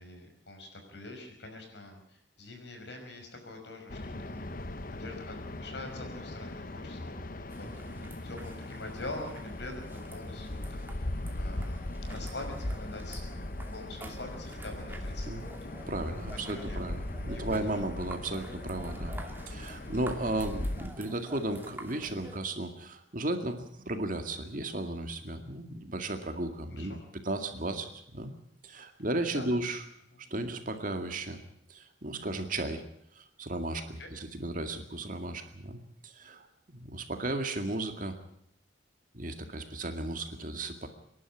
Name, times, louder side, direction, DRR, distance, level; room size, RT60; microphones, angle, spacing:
voice 1, 0.0-4.5 4.9-10.6 11.0-11.1 11.4-15.5 15.8-15.9 16.5-16.8 17.2-17.8 26.7-27.0 29.3-29.6 30.1-30.2 34.0-34.1 39.5-39.6, left 2 dB, 60° left, 4 dB, 5.6 m, -45 dB
sound 1, 3.9-20.9, left 1 dB, 45° left, 1.0 m, -39 dB
sound 2, 7.5-22.4, right 1 dB, 10° right, 2.4 m, -49 dB
voice 2, 15.9-19.2 19.5-27.0 27.2-28.3 28.6-29.8 30.3-31.4 31.7-32.8 33.1-38.2 39.1-40.9, right 2 dB, 45° right, 7 dB, 2.1 m, -35 dB
25.5 x 11.5 x 9.9 m, 0.73 s
head